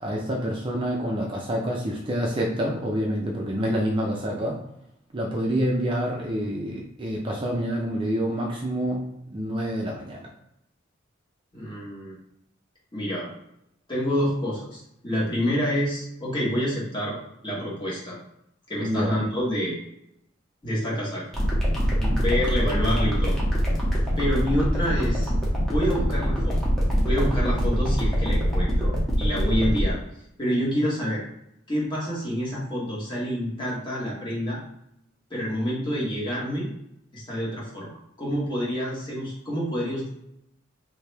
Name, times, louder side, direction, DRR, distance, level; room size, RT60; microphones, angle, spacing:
voice 1, 0.0-4.6 5.1-9.0 9.3-10.2 18.8-19.2 21.9-22.2, equal, 25° right, -2 dB, 0.5 m, -27 dB
voice 2, 11.5-12.2 12.9-13.3 13.9-17.2 17.4-18.2 18.7-19.7 20.6-21.2 22.2-23.4 24.2-25.3 25.6-26.6 27.0-30.0 30.4-31.2 31.7-34.6 35.3-36.7 37.1-37.9 38.2-40.1, equal, 25° left, -6 dB, 1.4 m, -27 dB
sound 1, 21.3-29.9, equal, ahead, 1.0 m, -24 dB
3.2 x 2.7 x 3.3 m, 0.79 s
head